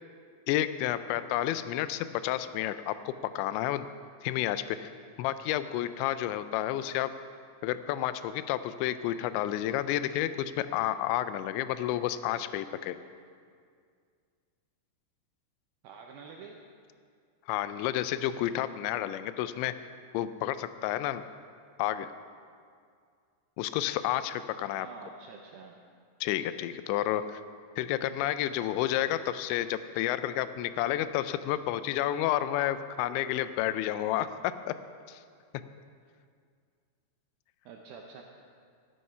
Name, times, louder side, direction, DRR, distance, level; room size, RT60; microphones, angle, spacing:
voice 1, 0.5-3.9 4.2-4.9 5.2-7.1 7.6-13.0 17.5-19.7 20.1-21.2 21.8-22.1 23.6-24.9 26.2-27.4 27.8-34.3 34.7-34.8 35.1-35.2, left 12 dB, 90° left, 13 dB, 2.9 m, -30 dB
voice 2, 15.8-16.6 24.7-25.8 37.7-38.2, right 5 dB, 85° right, 1 dB, 2.0 m, -47 dB
13.5 x 9.6 x 5.5 m, 2.2 s
omnidirectional pair, 5.2 m